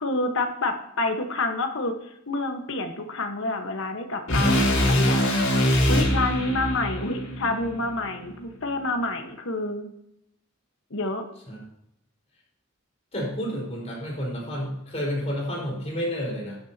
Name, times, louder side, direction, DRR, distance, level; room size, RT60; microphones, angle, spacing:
voice 1, 0.0-5.2 5.9-9.9 10.9-11.2, left 2 dB, 65° left, 5 dB, 1.3 m, -28 dB
sound 1, 4.3-8.5, equal, 80° left, 4.7 m, -23 dB
voice 2, 13.1-16.6, equal, 30° left, -4 dB, 4.6 m, -30 dB
12.5 x 9.7 x 2.8 m, 0.79 s
head